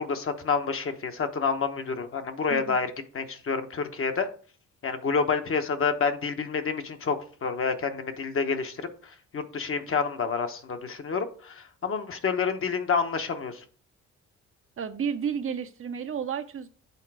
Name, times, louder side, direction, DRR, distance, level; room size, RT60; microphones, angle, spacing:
voice 1, 0.0-2.9 3.1-4.3 4.8-13.6, left 5 dB, 45° left, 1.1 m, -28 dB
voice 2, 2.5-2.8 14.8-16.7, right 7 dB, 45° right, 0.7 m, -32 dB
8.3 x 3.8 x 4.8 m
cardioid pair, 90°, 30 cm